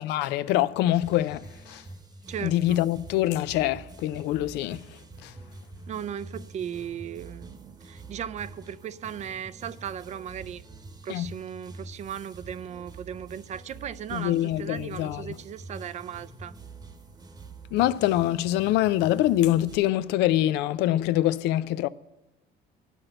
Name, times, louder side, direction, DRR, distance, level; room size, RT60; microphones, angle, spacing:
voice 1, 0.0-1.8 2.4-4.8 5.2-5.3 11.1-11.3 14.1-15.3 17.7-21.9, left 14 dB, 90° left, 0.4 m, -25 dB
sound 1, 1.0-19.8, right 3 dB, 25° right, 1.0 m, -46 dB
voice 2, 2.3-2.8 5.9-10.6 11.0-16.5, right 9 dB, 45° right, 0.4 m, -37 dB
10.0 x 6.0 x 7.8 m
cardioid pair, 110°, 17 cm